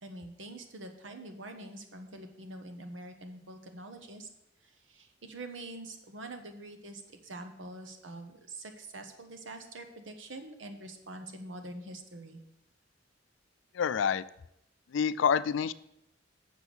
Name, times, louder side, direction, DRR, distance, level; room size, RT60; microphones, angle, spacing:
voice 1, 0.0-4.3 4.9-12.4, right 2 dB, 85° right, 6 dB, 1.2 m, -45 dB
voice 2, 13.7-14.2 14.9-15.7, left 7 dB, 75° left, 16 dB, 0.4 m, -27 dB
6.8 x 6.2 x 7.1 m, 0.80 s
head